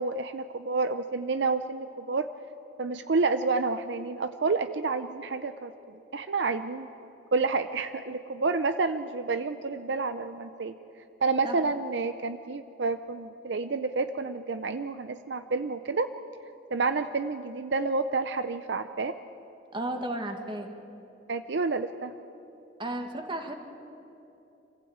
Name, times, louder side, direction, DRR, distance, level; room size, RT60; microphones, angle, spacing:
voice 1, 0.0-2.3 2.8-6.9 7.3-10.7 11.2-16.1 16.7-19.2 21.3-22.1, right 4 dB, 70° right, 11 dB, 0.6 m, -29 dB
voice 2, 19.7-20.7 22.8-23.6, right 1 dB, 25° right, 5 dB, 1.8 m, -33 dB
26.0 x 15.5 x 8.8 m, 3.0 s
head